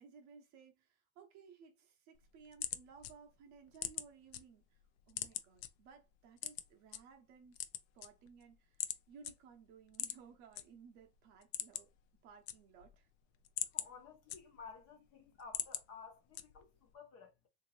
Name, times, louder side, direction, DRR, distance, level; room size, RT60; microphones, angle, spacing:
voice 1, 0.0-4.8 5.1-7.6 7.9-11.9 12.2-13.1 13.8-13.9, right 6 dB, 35° right, 0.6 m, -59 dB
sound 1, 2.2-4.4 4.8-5.7 6.4-7.0 7.5-8.4 8.8-9.0 9.2-9.3 9.9-10.6 11.0-11.1 11.4-12.0 12.3-13.0 13.3-14.8 15.2-15.8 16.3-16.8, left 12 dB, 80° left, 0.7 m, -41 dB
voice 2, 13.7-17.5, left 5 dB, 30° left, 0.6 m, -54 dB
3.6 x 2.6 x 3.0 m
cardioid pair, 175°, 50 cm